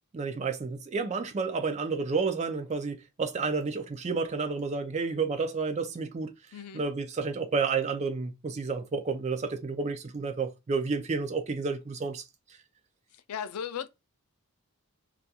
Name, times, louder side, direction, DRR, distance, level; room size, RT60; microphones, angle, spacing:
voice 1, 0.1-6.3 6.7-12.2, right 4 dB, 30° right, 0.3 m, -30 dB
voice 2, 6.5-6.8 13.3-13.9, left 8 dB, 90° left, 0.4 m, -36 dB
2.3 x 2.2 x 2.7 m
head